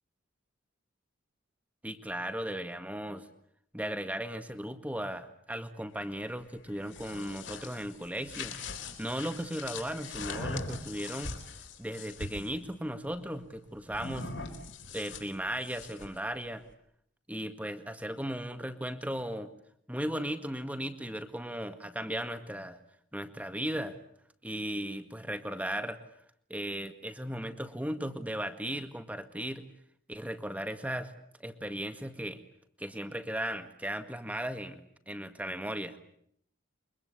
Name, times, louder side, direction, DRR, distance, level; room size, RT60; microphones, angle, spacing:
voice 1, 1.8-3.3 3.7-8.5 9.0-11.3 11.8-14.3 14.9-16.6 17.3-19.5 19.9-22.8 23.1-24.0 24.4-26.0 26.5-29.6 30.1-31.1 31.4-32.4 32.8-36.0, equal, 5° right, 8 dB, 1.9 m, -36 dB
sound 1, 6.7-12.5 13.9-16.2, left 3 dB, 60° left, 4.2 m, -41 dB
29.0 x 24.0 x 8.4 m, 0.69 s
head